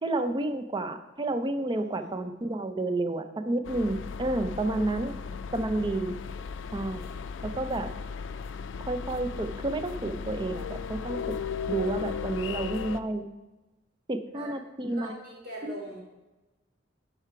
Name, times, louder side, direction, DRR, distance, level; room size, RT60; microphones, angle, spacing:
voice 1, 0.0-5.1 5.5-6.1 6.7-7.1 7.4-7.9 8.9-11.4 11.7-13.2 14.1-15.1 15.6-15.7, right 2 dB, 25° right, 9 dB, 0.5 m, -30 dB
voice 2, 1.7-2.1 4.9-5.6 14.3-14.5 14.9-16.0, right 1 dB, 60° right, -3 dB, 3.1 m, -43 dB
sound 1, 3.6-13.0, left 6 dB, 80° left, 0.4 m, -36 dB
9.6 x 5.7 x 4.6 m, 1.1 s
head